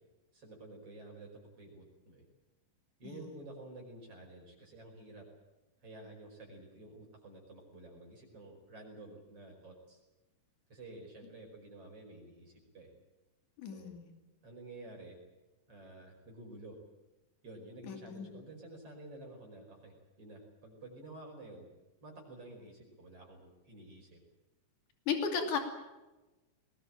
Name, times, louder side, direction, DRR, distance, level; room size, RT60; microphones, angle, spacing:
voice 1, 0.3-2.2 3.0-5.3 5.8-10.0 10.7-12.9 13.7-13.9 14.4-15.2 15.7-16.8 17.4-21.7 22.0-24.2, right 2 dB, 45° right, 0 dB, 6.1 m, -51 dB
voice 2, 13.6-14.1 17.8-18.3 25.1-25.6, left 6 dB, 70° left, 4 dB, 4.2 m, -35 dB
22.0 x 20.5 x 8.9 m, 1.1 s
omnidirectional pair, 3.7 m